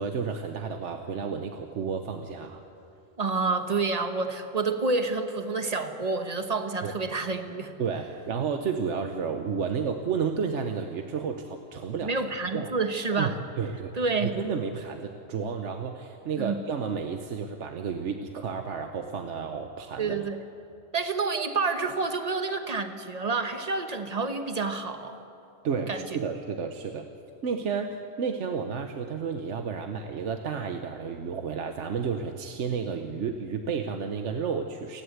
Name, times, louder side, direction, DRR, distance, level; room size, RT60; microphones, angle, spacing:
voice 1, 0.0-2.6 6.8-6.9 7.8-12.1 12.5-12.7 13.2-13.9 14.2-20.3 25.6-27.1 27.4-35.0, right 6 dB, 70° right, 5 dB, 1.2 m, -31 dB
voice 2, 3.2-7.7 12.0-13.4 14.0-14.4 16.4-16.5 20.0-20.4 20.9-25.2 25.9-26.1, right 3 dB, 30° right, 7 dB, 1.2 m, -28 dB
30.0 x 11.5 x 8.1 m, 2.7 s
omnidirectional pair, 1.3 m